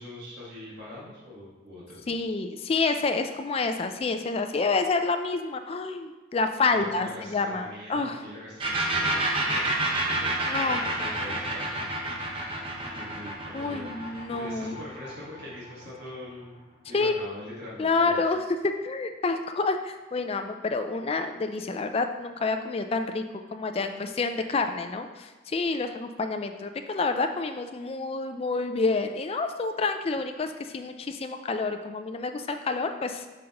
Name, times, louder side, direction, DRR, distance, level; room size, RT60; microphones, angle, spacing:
voice 1, 0.0-2.1 6.7-11.9 12.5-16.6 16.9-18.2, left 1 dB, 50° right, -7 dB, 1.6 m, -43 dB
voice 2, 2.1-8.2 10.5-10.8 13.5-14.8 16.9-17.1 17.8-23.2 23.5-33.2, left 3 dB, 30° left, 7 dB, 0.3 m, -28 dB
sound 1, 8.6-16.1, right 2 dB, 25° right, 0.7 m, -29 dB
7.5 x 5.1 x 2.9 m, 1.3 s
head